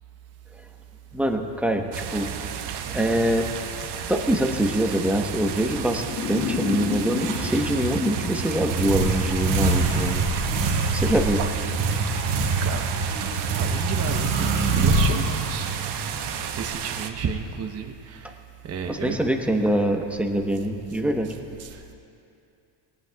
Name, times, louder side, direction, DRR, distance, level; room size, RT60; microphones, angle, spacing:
voice 1, 1.1-2.3 2.9-3.5 4.1-10.2 10.8-11.4 18.9-21.3, equal, 5° right, 3 dB, 1.1 m, -24 dB
sound 1, 1.9-17.1, right 8 dB, 55° right, 1.0 m, -33 dB
sound 2, 5.9-9.1, left 7 dB, 30° left, 0.4 m, -32 dB
sound 3, 7.2-17.0, right 3 dB, 85° right, 2.1 m, -25 dB
voice 2, 12.6-15.8 16.5-18.4 18.6-19.3 21.2-21.9, right 6 dB, 30° right, 4 dB, 0.9 m, -33 dB
19.0 x 19.0 x 2.4 m, 2.6 s
supercardioid pair, 105°, 49 cm